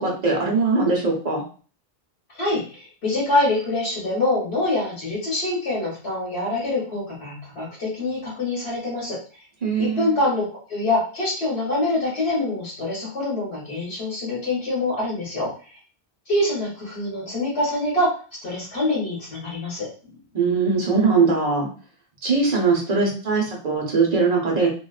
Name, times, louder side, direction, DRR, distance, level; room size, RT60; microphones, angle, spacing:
voice 1, 0.0-1.4 9.6-10.1 20.3-21.7 22.2-24.7, right 4 dB, 40° right, -2 dB, 1.0 m, -21 dB
voice 2, 2.3-9.2 9.8-15.5 16.3-18.2 18.4-19.9, left 2 dB, 85° left, -5 dB, 1.4 m, -25 dB
3.0 x 2.6 x 2.4 m, 0.38 s
omnidirectional pair, 1.1 m